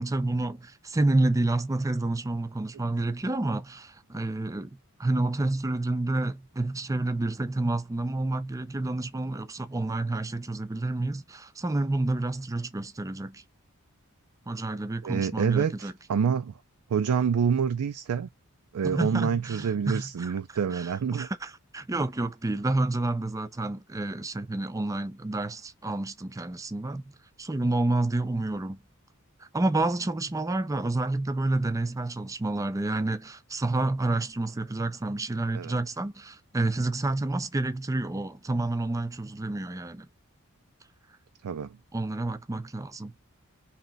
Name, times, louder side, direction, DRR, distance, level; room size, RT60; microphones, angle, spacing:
voice 1, 0.0-13.4 14.5-15.9 18.8-20.3 20.7-28.8 29.4-40.1 41.9-43.1, right 2 dB, 15° right, 0.4 m, -29 dB
voice 2, 15.0-16.5 16.9-18.3 18.7-21.3 35.5-35.7 41.4-41.8, right 7 dB, 90° right, 0.4 m, -27 dB
3.2 x 2.8 x 3.9 m
head